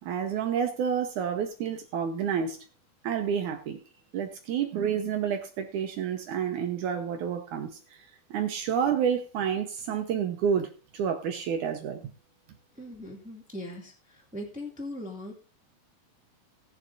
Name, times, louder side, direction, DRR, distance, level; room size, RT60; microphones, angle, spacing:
voice 1, 0.0-2.6 3.0-3.8 4.1-8.1 8.3-12.1, right 8 dB, 70° right, 5 dB, 2.1 m, -29 dB
voice 2, 12.8-13.9 14.3-15.3, left 1 dB, 5° right, 0 dB, 1.3 m, -39 dB
19.0 x 7.3 x 2.6 m, 0.35 s
omnidirectional pair, 4.1 m